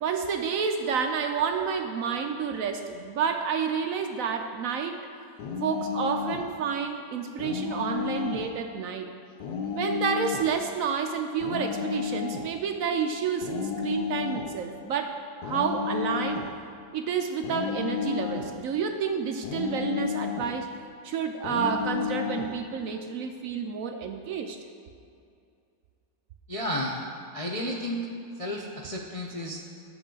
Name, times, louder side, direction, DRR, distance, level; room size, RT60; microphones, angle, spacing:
voice 1, 0.0-5.0 5.6-9.2 9.7-16.5 16.9-20.7 21.0-24.6, right 6 dB, 70° right, 5 dB, 0.8 m, -29 dB
sound 1, 5.4-6.5 7.4-8.5 9.4-10.5 11.4-12.5 13.4-14.5 15.4-16.5 17.4-18.6 19.4-20.6 21.4-22.5, left 7 dB, 85° left, 1.4 m, -32 dB
voice 2, 26.5-27.0 27.3-28.0 28.4-29.6, equal, 65° left, -1 dB, 0.3 m, -32 dB
11.0 x 8.0 x 3.8 m, 2.5 s
omnidirectional pair, 1.8 m